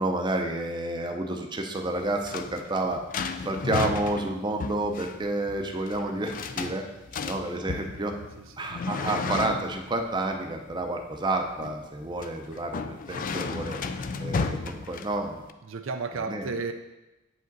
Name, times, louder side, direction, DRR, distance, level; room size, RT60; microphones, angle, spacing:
voice 1, 0.0-3.0 3.4-6.9 7.3-8.2 8.6-13.8 14.2-15.4 16.3-16.5, right 2 dB, 20° right, 3 dB, 0.6 m, -30 dB
sound 1, 1.8-15.5, left 4 dB, 40° left, 0.4 m, -34 dB
voice 2, 8.4-8.7 15.6-16.7, right 4 dB, 65° right, 6 dB, 0.5 m, -33 dB
8.4 x 5.1 x 4.0 m, 1.0 s
head